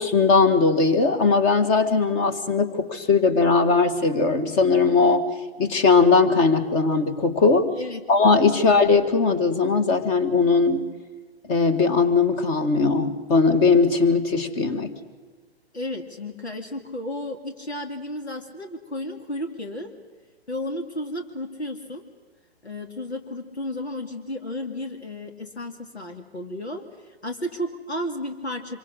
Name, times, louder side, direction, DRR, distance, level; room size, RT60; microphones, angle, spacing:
voice 1, 0.0-5.3 5.6-7.7 8.1-10.8 11.5-14.9, left 4 dB, 30° left, 11 dB, 1.8 m, -19 dB
voice 2, 7.7-8.1 8.5-8.7 15.7-19.9 20.5-22.0 22.6-28.8, left 1 dB, 90° left, 4 dB, 2.6 m, -33 dB
26.0 x 24.0 x 6.4 m, 1.4 s
figure-of-eight pair, 120°, 32 cm